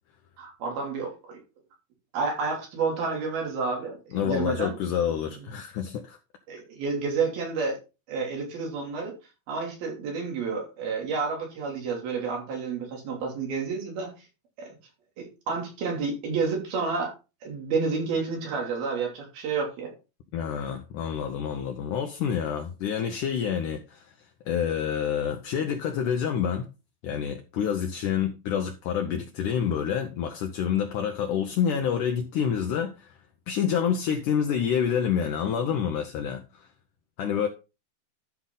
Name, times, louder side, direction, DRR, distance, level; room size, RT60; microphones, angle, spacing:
voice 1, 0.4-1.4 2.1-4.7 6.5-7.8 8.1-9.1 9.5-14.1 14.6-14.8 15.2-17.1 17.4-19.9, right 4 dB, 85° right, 4.9 m, -30 dB
voice 2, 4.1-6.2 20.3-24.1 24.5-26.7 27.0-33.1 33.5-36.7 37.2-37.5, left 8 dB, 70° left, 2.1 m, -28 dB
12.5 x 5.7 x 3.9 m
omnidirectional pair, 4.2 m